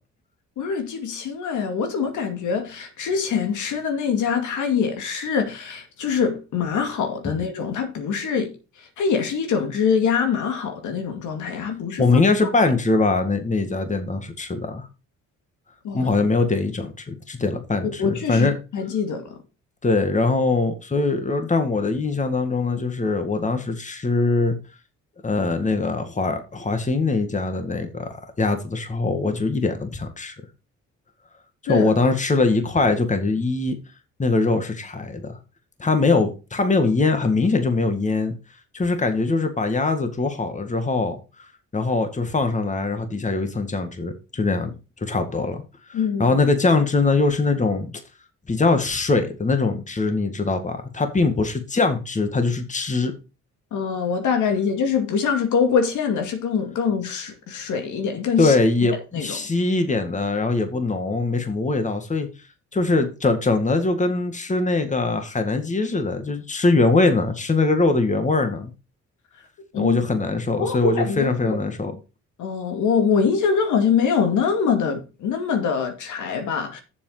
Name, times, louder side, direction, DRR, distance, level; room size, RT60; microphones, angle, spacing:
voice 1, 0.6-8.5 9.0-12.1 15.8-16.1 17.8-18.5 18.7-19.4 31.7-31.9 45.9-46.4 53.7-58.5 58.9-59.4 69.7-70.0 70.6-71.6 72.4-76.8, left 6 dB, 80° left, 2.3 m, -24 dB
voice 2, 12.0-14.9 15.9-18.5 19.8-24.6 25.2-28.1 28.4-30.3 31.7-33.8 34.2-35.3 35.8-38.3 38.7-41.5 41.7-44.7 45.0-45.6 45.9-47.9 48.5-53.1 58.4-62.3 62.7-68.7 69.7-71.9, left 3 dB, 25° left, 2.0 m, -22 dB
7.4 x 6.9 x 5.0 m
cardioid pair, 90°, 30 cm